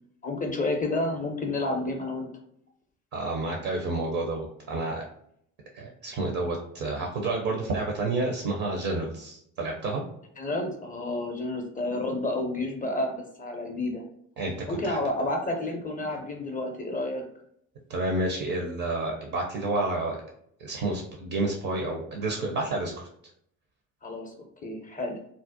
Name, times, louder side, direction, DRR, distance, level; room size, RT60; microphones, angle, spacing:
voice 1, 0.2-2.3 10.4-14.0 14.7-17.2 24.0-24.3 24.6-25.1, left 2 dB, 20° left, 3 dB, 0.5 m, -30 dB
voice 2, 3.1-5.0 5.7-10.0 14.4-14.5 14.8-15.0 17.9-20.2 20.6-23.1, right 2 dB, 50° right, 1 dB, 0.6 m, -30 dB
2.5 x 2.0 x 2.6 m, 0.71 s
hypercardioid pair, 55°, 41 cm